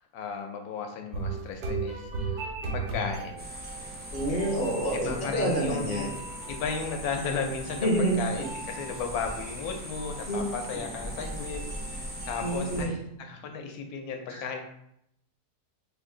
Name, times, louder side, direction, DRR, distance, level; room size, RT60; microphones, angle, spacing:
voice 1, 0.1-3.5 4.9-11.6 11.9-14.6, left 5 dB, 75° left, 4 dB, 1.1 m, -35 dB
sound 1, 1.1-12.6, right 4 dB, 80° right, 1.3 m, -39 dB
sound 2, 3.4-12.9, equal, 15° right, 0.3 m, -39 dB
voice 2, 4.1-6.1 7.8-8.2 10.3-10.4 12.4-12.9 14.3-14.4, right 1 dB, 45° left, -2 dB, 0.6 m, -27 dB
3.1 x 2.6 x 3.7 m, 0.76 s
omnidirectional pair, 1.7 m